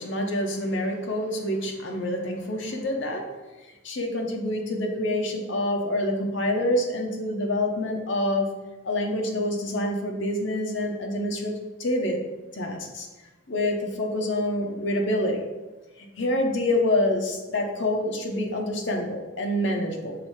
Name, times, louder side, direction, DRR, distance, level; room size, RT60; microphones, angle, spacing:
voice 1, 0.0-3.3 3.8-8.5 8.8-12.2 12.5-13.1 13.5-15.4 16.0-20.2, left 1 dB, 75° left, 2 dB, 1.0 m, -27 dB
6.1 x 3.3 x 4.8 m, 1.1 s
head